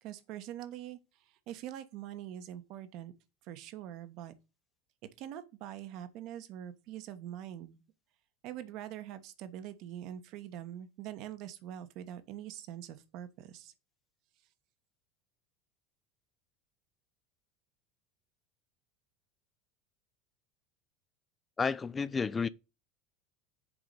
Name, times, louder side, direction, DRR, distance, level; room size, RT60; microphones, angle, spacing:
voice 1, 0.0-3.1 3.4-4.3 5.2-7.8 8.4-13.7, right 11 dB, 55° right, 1.1 m, -44 dB
voice 2, 21.6-22.5, left 5 dB, 20° left, 0.4 m, -31 dB
7.2 x 4.9 x 5.4 m
figure-of-eight pair, 75°, 0 cm